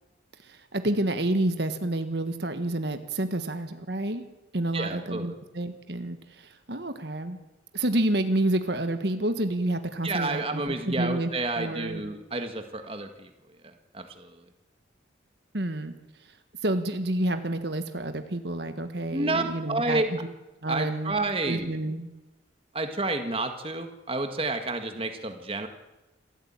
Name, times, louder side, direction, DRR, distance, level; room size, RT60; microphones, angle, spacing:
voice 1, 0.4-4.2 4.5-7.4 7.7-11.3 11.5-12.0 15.5-15.9 16.6-20.3 20.6-21.1 21.5-22.1, right 1 dB, 60° right, 8 dB, 1.6 m, -29 dB
voice 2, 4.7-5.3 10.0-13.3 13.6-14.4 19.1-20.1 20.7-21.7 22.7-25.7, right 2 dB, 30° right, 7 dB, 1.7 m, -30 dB
27.0 x 14.0 x 8.9 m, 1.1 s
head